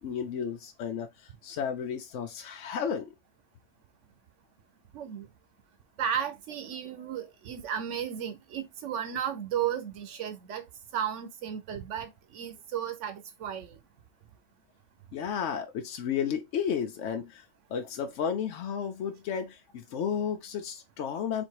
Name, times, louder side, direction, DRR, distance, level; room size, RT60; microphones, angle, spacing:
voice 1, 0.0-3.1 15.1-21.4, left 7 dB, 80° left, 1.0 m, -33 dB
voice 2, 4.9-5.3 6.0-10.7 10.9-13.8, right 9 dB, 80° right, 1.1 m, -34 dB
4.1 x 2.7 x 4.5 m
omnidirectional pair, 1.2 m